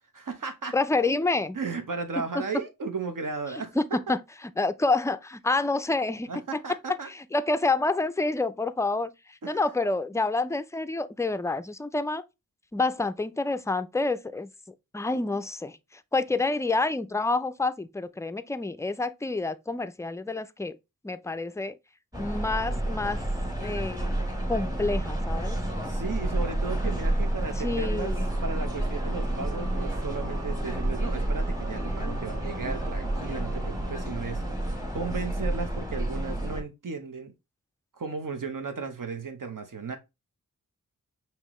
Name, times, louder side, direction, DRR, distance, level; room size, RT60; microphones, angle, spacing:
voice 1, 0.1-0.7 1.5-3.8 6.3-7.1 9.4-9.7 25.8-34.4 34.7-37.3 38.0-40.0, right 4 dB, 70° right, 0.9 m, -35 dB
voice 2, 0.7-1.6 2.3-2.4 3.8-4.2 4.6-6.6 7.1-12.2 12.7-14.5 14.9-15.8 16.1-20.8 21.0-21.8 22.2-23.2 23.6-25.6 27.6-28.3, left 3 dB, 10° left, 0.3 m, -28 dB
sound 1, 22.1-36.6, right 1 dB, 10° right, 1.1 m, -30 dB
Singing / Musical instrument, 28.1-35.6, right 4 dB, 50° right, 1.7 m, -45 dB
5.6 x 2.9 x 3.0 m
wide cardioid pair, 75°, 34 cm